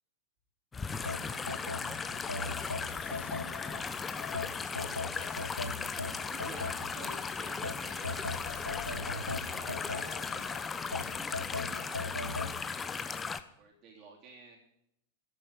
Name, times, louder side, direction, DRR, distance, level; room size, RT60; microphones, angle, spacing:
sound 1, 0.7-13.4, left 5 dB, 15° left, 0.9 m, -37 dB
voice 1, 1.0-2.3 2.7-5.5, right 1 dB, 80° right, -2 dB, 5.0 m, -59 dB
sound 2, 1.1-3.8 4.3-7.1 7.6-10.4 10.9-12.6, left 3 dB, 80° left, 1.0 m, -38 dB
sound 3, 1.8-11.8, left 12 dB, 45° left, 1.4 m, -51 dB
voice 2, 6.3-14.6, right 3 dB, 35° right, -1 dB, 3.5 m, -52 dB
11.0 x 9.0 x 9.4 m, 0.77 s
figure-of-eight pair, 90°, 0 cm